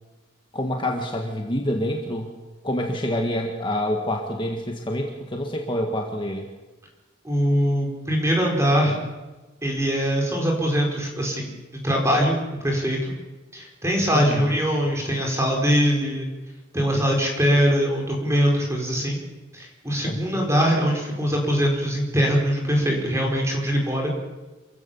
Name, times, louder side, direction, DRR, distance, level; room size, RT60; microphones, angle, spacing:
voice 1, 0.5-2.3 2.6-6.5 14.1-14.5 20.0-20.5, left 1 dB, 25° left, 2 dB, 1.7 m, -27 dB
voice 2, 7.2-9.0 9.6-11.5 11.8-13.1 13.5-16.3 16.7-19.2 19.5-24.1, equal, 15° right, 0 dB, 4.9 m, -22 dB
27.5 x 15.5 x 7.2 m, 1.2 s
head